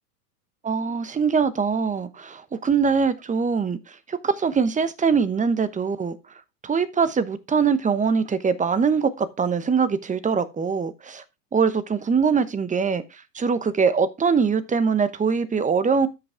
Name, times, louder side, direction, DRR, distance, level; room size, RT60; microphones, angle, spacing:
voice 1, 0.6-6.2 6.6-11.2 11.5-16.1, right 5 dB, 15° right, 0.9 m, -23 dB
12.5 x 5.4 x 3.6 m
hypercardioid pair, 105°, 48 cm